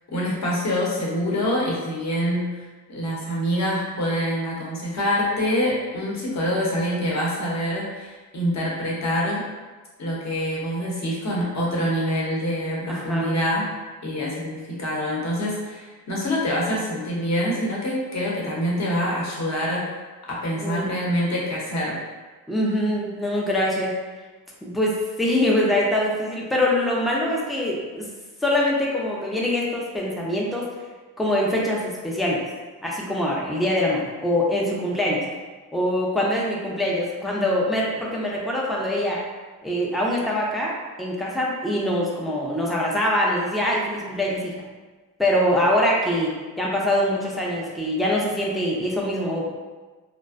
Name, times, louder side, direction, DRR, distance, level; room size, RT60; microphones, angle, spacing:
voice 1, 0.1-9.4 10.0-13.7 14.0-19.8 20.2-22.0, equal, 40° left, -5 dB, 0.8 m, -25 dB
voice 2, 12.9-13.4 20.6-20.9 22.5-23.9 24.6-28.1 28.4-30.7 31.2-32.4 32.8-35.2 35.7-39.2 39.6-44.5 45.2-49.5, left 1 dB, ahead, -3 dB, 0.4 m, -24 dB
2.4 x 2.1 x 2.4 m, 1.3 s
cardioid pair, 80°, 40 cm